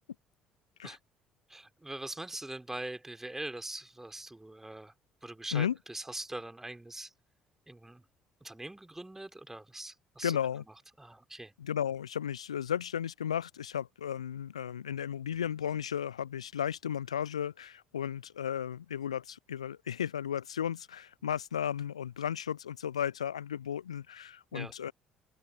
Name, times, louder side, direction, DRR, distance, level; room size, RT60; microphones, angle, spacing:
voice 1, 1.5-4.9 5.2-7.1 7.7-8.0 8.4-10.6 11.0-11.5 24.5-24.7, right 2 dB, 10° right, 3.8 m, -42 dB
voice 2, 10.2-10.6 11.6-24.9, left 9 dB, 80° left, 0.6 m, -34 dB
open air
figure-of-eight pair, 50°, 3 cm